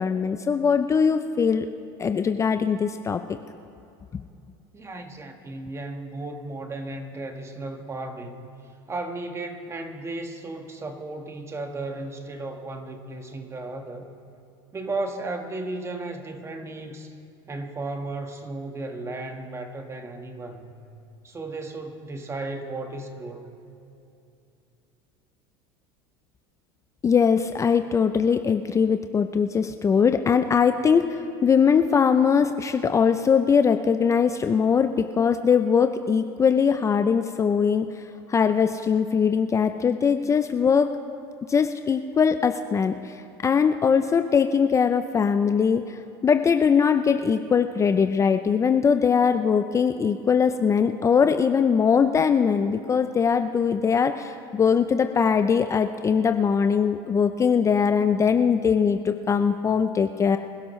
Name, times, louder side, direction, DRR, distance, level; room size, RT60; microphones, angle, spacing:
voice 1, 0.0-1.7 2.0-3.2 4.1-4.2 27.0-37.9 38.3-40.9 41.5-60.4, left 6 dB, 25° left, 8 dB, 0.5 m, -21 dB
voice 2, 4.7-8.5 8.9-14.1 14.7-17.1 17.5-20.7 21.2-23.6, right 2 dB, 20° right, 5 dB, 1.5 m, -35 dB
25.5 x 12.0 x 3.2 m, 2.7 s
supercardioid pair, 105°, 13 cm